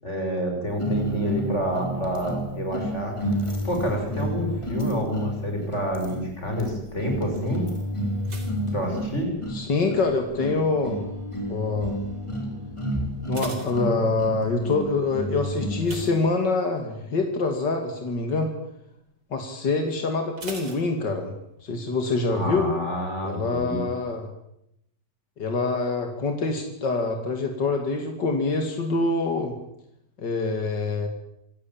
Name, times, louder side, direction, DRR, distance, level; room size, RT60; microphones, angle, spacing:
voice 1, 0.0-3.2 3.6-7.7 8.7-9.3 22.3-23.8, equal, 40° left, 2 dB, 6.7 m, -28 dB
sound 1, 0.8-16.2, equal, 15° left, 4.3 m, -31 dB
sound 2, 8.2-9.7 10.0-10.5 11.1-11.5 11.7-11.8 12.2-12.3 13.0-14.5 15.8-16.9 17.3-17.6 17.9-18.0 20.4-21.6 21.8-21.9, right 3 dB, 80° right, 4.5 m, -41 dB
voice 2, 9.5-11.0 11.5-12.0 13.3-18.5 19.3-21.3 21.6-22.7 23.2-24.3 25.4-29.5 30.2-31.1, left 3 dB, 80° left, 4 dB, 3.2 m, -25 dB
27.5 x 16.5 x 9.0 m, 0.80 s
omnidirectional pair, 1.9 m